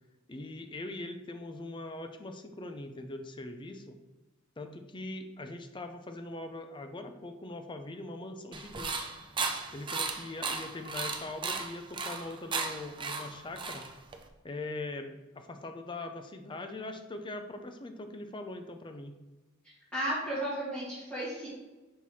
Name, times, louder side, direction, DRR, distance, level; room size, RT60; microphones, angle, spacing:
voice 1, 0.3-4.0 4.6-9.1 9.7-13.8 14.4-19.1, left 2 dB, 25° left, 6 dB, 0.5 m, -41 dB
sound 1, 8.5-14.3, right 4 dB, 25° right, 0.5 m, -35 dB
voice 2, 19.9-21.5, right 1 dB, 5° left, -12 dB, 2.2 m, -33 dB
5.7 x 4.6 x 4.1 m, 1.1 s
head